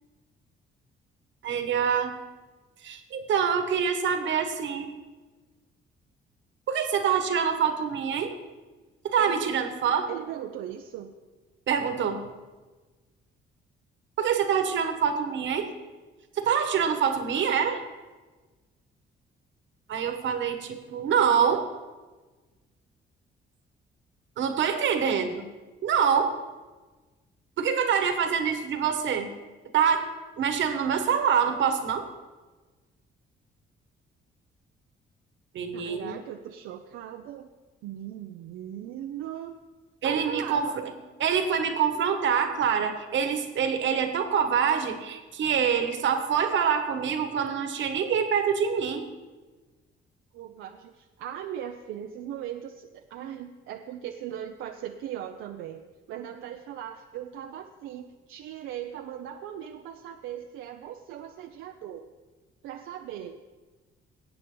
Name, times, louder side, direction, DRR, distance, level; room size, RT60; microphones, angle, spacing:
voice 1, 1.4-2.1 2.8-4.9 6.7-8.3 9.0-10.1 11.7-12.3 14.2-15.7 16.3-17.8 19.9-21.7 24.4-25.5 25.8-26.4 27.6-29.3 29.7-30.1 30.4-32.1 35.5-36.2 40.0-40.8 41.2-49.1, right 7 dB, 70° right, 7 dB, 1.4 m, -25 dB
voice 2, 9.2-9.6 10.1-11.1 35.7-37.5 37.8-39.6 40.0-40.8 50.3-62.1 62.6-63.4, right 10 dB, 90° right, 4 dB, 0.6 m, -38 dB
17.5 x 8.4 x 3.9 m, 1.3 s
cardioid pair, 90°, 20 cm